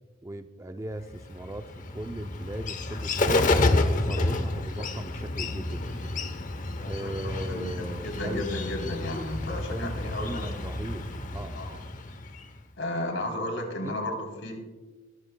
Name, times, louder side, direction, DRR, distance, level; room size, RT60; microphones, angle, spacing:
voice 1, 0.2-3.6 3.9-6.2 6.8-8.4 9.7-11.9 13.8-14.0, right 1 dB, 15° right, 8 dB, 0.5 m, -38 dB
Bird, 1.1-12.6, left 2 dB, 40° left, 0.8 m, -30 dB
voice 2, 6.8-10.5 11.5-11.8 12.8-14.6, left 1 dB, 85° left, 1 dB, 3.4 m, -34 dB
21.0 x 13.0 x 2.2 m, 1.2 s
head